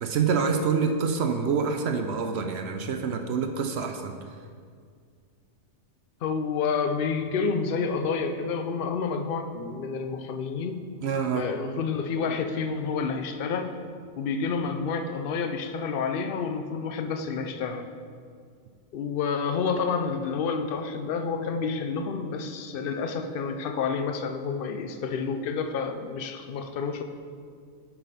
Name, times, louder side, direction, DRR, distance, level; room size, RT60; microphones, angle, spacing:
voice 1, 0.0-4.2 11.0-11.5, right 5 dB, 65° right, 5 dB, 0.7 m, -26 dB
voice 2, 6.2-10.8 11.3-13.8 14.2-17.9 18.9-27.0, left 5 dB, 60° left, 7 dB, 0.6 m, -29 dB
9.2 x 5.5 x 4.1 m, 2.1 s
omnidirectional pair, 1.4 m